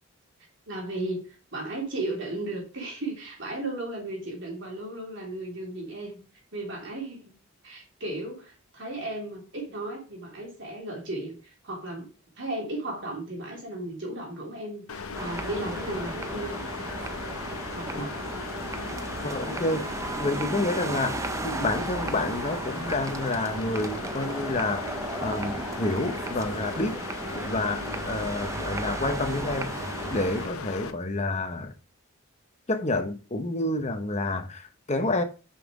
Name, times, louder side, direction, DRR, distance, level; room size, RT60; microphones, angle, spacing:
voice 1, 0.7-6.2 6.5-7.3 7.6-12.1 12.4-16.6 17.7-18.1, right 2 dB, 55° right, 3.2 m, -35 dB
sound 1, 14.9-30.9, left 5 dB, 75° left, 0.7 m, -37 dB
sound 2, 15.1-30.5, right 2 dB, 15° right, 0.4 m, -35 dB
voice 2, 19.2-19.9 20.2-27.0 27.3-29.7 30.1-31.7 32.7-35.2, left 2 dB, 30° left, 0.8 m, -29 dB
5.8 x 5.5 x 4.8 m
head